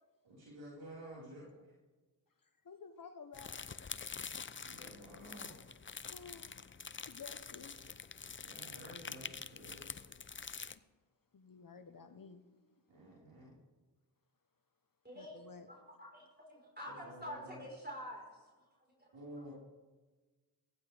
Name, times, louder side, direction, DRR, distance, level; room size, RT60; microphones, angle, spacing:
voice 1, 0.2-1.6 4.5-5.6 8.4-10.0 12.9-13.5 16.9-17.6 19.1-19.5, equal, 70° right, -7 dB, 5.0 m, -52 dB
voice 2, 2.4-3.6 6.0-6.8 7.1-7.9 11.3-12.7 15.1-15.7, left 5 dB, 45° left, 8 dB, 1.1 m, -53 dB
sound 1, 3.3-10.8, left 5 dB, 25° left, 0.6 m, -46 dB
voice 3, 15.0-19.4, equal, 20° right, -2 dB, 4.7 m, -49 dB
15.5 x 15.0 x 3.5 m, 1.3 s
supercardioid pair, 40°, 46 cm